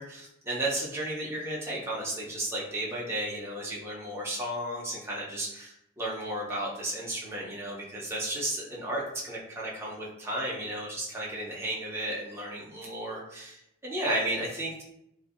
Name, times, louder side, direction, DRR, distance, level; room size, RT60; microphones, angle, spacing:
voice 1, 0.0-14.8, right 1 dB, 15° right, -5 dB, 0.5 m, -34 dB
2.6 x 2.4 x 2.4 m, 0.79 s
head